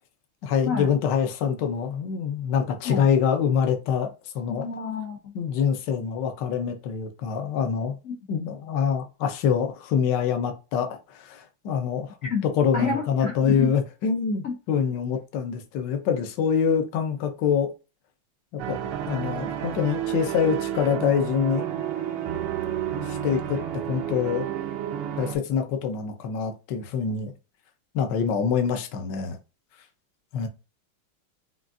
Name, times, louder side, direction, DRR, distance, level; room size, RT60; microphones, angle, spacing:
voice 1, 0.4-4.7 5.3-8.0 8.3-17.7 18.5-18.8 19.1-21.7 23.0-23.6 23.8-24.5 25.2-27.3 27.9-29.4 30.3-30.5, left 7 dB, 65° left, 1.3 m, -25 dB
voice 2, 4.5-5.2 8.0-8.2 12.3-12.4 12.7-13.7 14.4-14.5, left 5 dB, 80° left, 0.7 m, -28 dB
sound 1, 18.6-25.4, right 10 dB, 80° right, 1.7 m, -31 dB
6.1 x 2.5 x 2.6 m
omnidirectional pair, 2.4 m